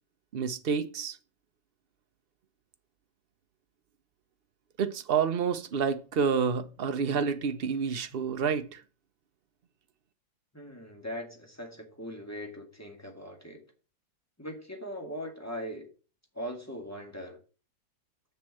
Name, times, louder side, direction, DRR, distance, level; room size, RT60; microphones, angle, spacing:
voice 1, 0.3-1.2 4.8-8.8, right 6 dB, 55° right, 0.6 m, -29 dB
voice 2, 10.5-13.6 14.4-15.9 16.3-17.4, equal, 10° left, 2.1 m, -40 dB
6.9 x 6.7 x 7.5 m
omnidirectional pair, 2.1 m